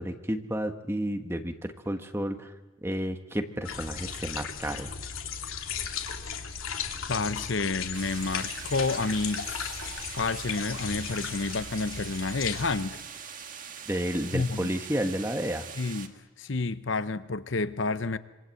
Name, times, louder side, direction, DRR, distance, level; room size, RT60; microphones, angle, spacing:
voice 1, 0.0-2.5 2.8-4.9 13.9-15.7, equal, 10° right, 1.4 m, -31 dB
sound 1, 3.6-12.8, left 6 dB, 80° left, 2.8 m, -36 dB
voice 2, 7.1-9.9 10.2-13.0 14.3-14.7 15.8-18.2, left 3 dB, 60° left, 0.8 m, -30 dB
sound 2, 7.9-16.1, right 7 dB, 40° right, 1.8 m, -42 dB
26.0 x 25.0 x 7.8 m
head